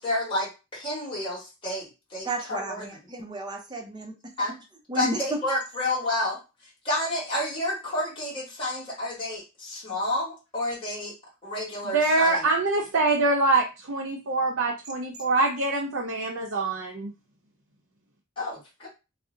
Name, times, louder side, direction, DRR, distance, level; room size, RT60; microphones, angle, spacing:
voice 1, 0.0-2.9 4.4-4.5 4.9-6.4 6.8-11.1 11.4-12.4 18.4-18.9, left 1 dB, 25° left, -6 dB, 1.2 m, -30 dB
voice 2, 2.2-4.3 4.9-5.4, right 2 dB, 20° right, 2 dB, 0.5 m, -33 dB
voice 3, 11.8-17.1, right 2 dB, 75° right, -1 dB, 0.6 m, -24 dB
2.6 x 2.0 x 3.7 m, 0.27 s
head